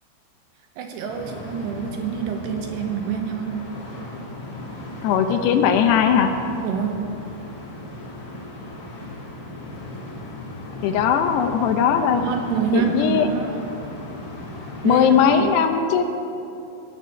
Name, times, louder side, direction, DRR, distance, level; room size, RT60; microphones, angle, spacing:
voice 1, 0.8-3.7 6.6-7.2 12.2-13.6 14.8-15.1 15.4-15.5, right 7 dB, 75° right, 4 dB, 2.5 m, -26 dB
sound 1, 1.1-15.4, left 1 dB, 40° left, 2.5 m, -36 dB
voice 2, 5.0-6.3 10.8-12.2 12.7-13.3 14.8-16.0, left 7 dB, 80° left, 6 dB, 2.6 m, -19 dB
20.0 x 7.3 x 6.2 m, 2.7 s
omnidirectional pair, 5.4 m